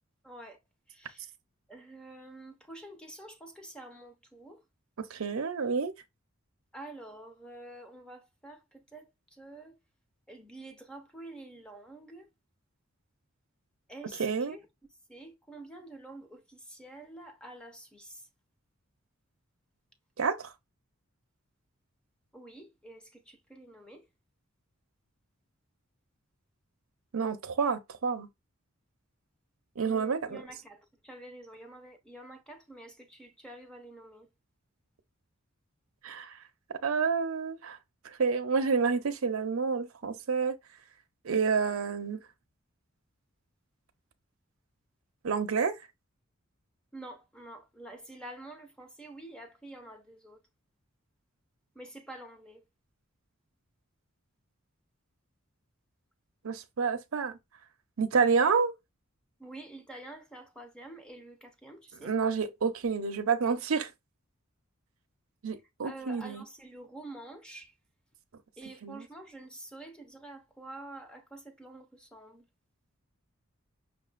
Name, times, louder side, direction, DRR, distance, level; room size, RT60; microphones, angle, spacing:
voice 1, 0.2-0.6 0.9-1.3 1.7-4.6 6.7-9.8 10.3-12.3 13.9-14.6 15.1-18.3 22.3-24.1 29.8-34.3 46.9-50.4 51.7-52.6 59.4-62.1 65.8-67.7 68.6-72.4, right 1 dB, 5° left, 0.6 m, -48 dB
voice 2, 5.0-5.9 14.2-14.6 20.2-20.5 27.1-28.3 29.8-30.4 36.0-36.4 36.7-37.8 38.0-40.6 41.2-42.2 45.2-45.8 56.4-57.4 58.0-58.7 62.0-63.9 65.4-66.4 68.8-69.1, right 5 dB, 80° right, 0.6 m, -29 dB
5.8 x 2.3 x 2.4 m
head